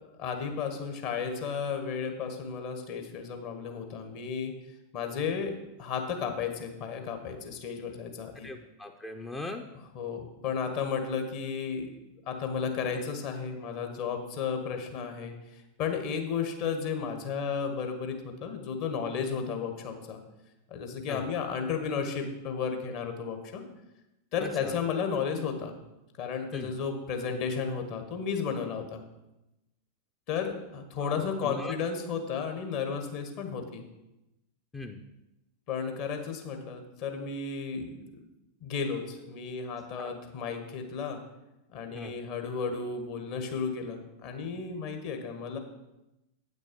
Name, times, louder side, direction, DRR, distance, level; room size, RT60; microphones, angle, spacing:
voice 1, 0.2-4.5 4.9-5.5 5.8-8.5 9.9-11.9 12.3-15.3 15.8-20.2 20.7-23.6 24.3-25.8 26.2-29.0 30.3-33.8 35.7-38.0 38.6-41.2 41.7-45.6, left 6 dB, 45° left, 5 dB, 1.4 m, -33 dB
voice 2, 8.4-9.7 21.1-21.3 24.4-24.8 26.5-26.7 31.0-31.8 34.7-35.0 40.0-40.1 41.9-42.1, left 2 dB, 15° left, 4 dB, 0.6 m, -40 dB
8.8 x 6.2 x 5.3 m, 0.95 s
figure-of-eight pair, 90°, 0 cm